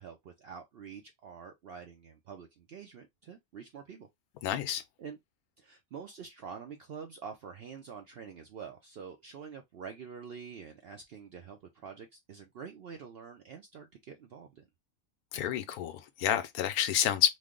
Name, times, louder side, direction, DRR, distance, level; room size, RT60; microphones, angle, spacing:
voice 1, 0.0-4.1 5.0-5.2 5.6-14.6, right 6 dB, 70° right, 0.5 m, -46 dB
voice 2, 4.4-4.8 15.3-17.4, left 10 dB, 85° left, 1.1 m, -29 dB
3.1 x 2.0 x 3.6 m
omnidirectional pair, 1.5 m